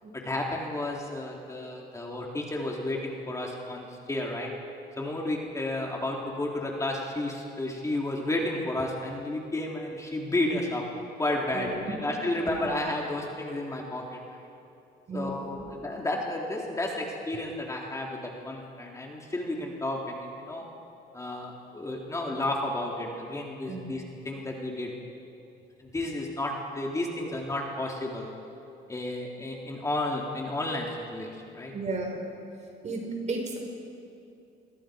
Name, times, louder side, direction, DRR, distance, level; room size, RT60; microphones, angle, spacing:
voice 1, 0.1-4.5 5.0-10.8 11.2-14.2 15.1-20.7 21.1-24.9 25.8-28.3 28.9-31.7, left 1 dB, 20° left, -1 dB, 3.5 m, -32 dB
voice 2, 11.5-12.0 12.6-12.7 15.1-15.7 23.7-23.9 31.7-32.2 32.8-33.0 33.3-33.6, right 3 dB, 45° right, 1 dB, 5.7 m, -34 dB
29.5 x 22.5 x 5.2 m, 2.8 s
cardioid pair, 110°, 17 cm